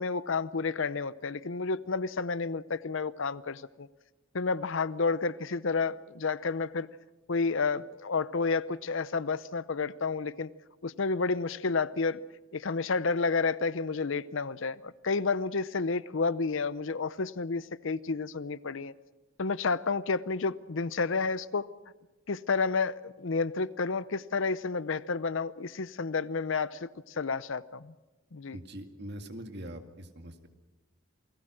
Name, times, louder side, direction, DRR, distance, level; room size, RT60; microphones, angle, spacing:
voice 1, 0.0-3.9 4.3-6.9 7.3-10.5 10.8-12.2 12.5-18.9 19.4-21.7 22.3-27.9 28.3-28.6, left 4 dB, 65° left, 0.7 m, -30 dB
voice 2, 28.5-30.5, right 1 dB, 55° right, 2.1 m, -43 dB
28.5 x 19.5 x 6.3 m
head